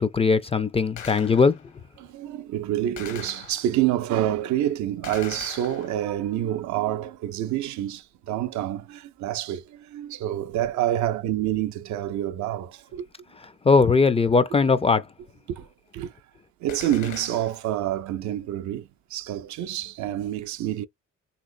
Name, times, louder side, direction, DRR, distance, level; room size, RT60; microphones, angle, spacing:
voice 1, 0.0-1.6 13.6-15.0, left 4 dB, 20° left, 0.3 m, -19 dB
Gunshot gunfire, 1.0-1.8 3.0-3.9 5.0-6.3 16.7-17.8, left 7 dB, 70° left, 1.1 m, -41 dB
voice 2, 2.0-13.1 15.5-15.7 15.9-16.1 16.6-20.9, right 12 dB, 70° right, 0.5 m, -27 dB
3.1 x 2.9 x 2.5 m
cardioid pair, 90°, 30 cm